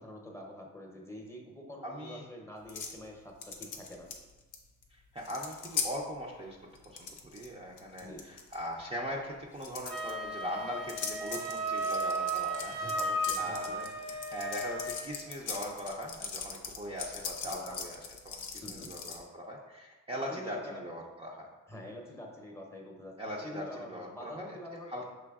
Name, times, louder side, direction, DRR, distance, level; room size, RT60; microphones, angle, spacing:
voice 1, 0.0-4.1 8.0-8.2 12.8-13.8 17.4-17.8 18.6-18.9 20.3-20.8 21.7-25.1, left 1 dB, 10° left, 0 dB, 0.8 m, -46 dB
voice 2, 1.8-2.2 4.9-6.6 6.8-18.0 18.2-21.5 23.2-24.6 24.9-25.1, equal, 20° right, -3 dB, 0.5 m, -40 dB
sound 1, 2.7-3.0 3.4-4.6 4.8-4.9 5.2-5.9 6.8-7.5 7.8-8.6 9.6-10.1 10.9-19.2, left 6 dB, 90° left, 0.6 m, -39 dB
Wind instrument woodwind instrument, 9.9-15.1, right 1 dB, 90° right, 0.9 m, -34 dB
6.1 x 3.2 x 2.3 m, 1.2 s
cardioid pair, 90°, 30 cm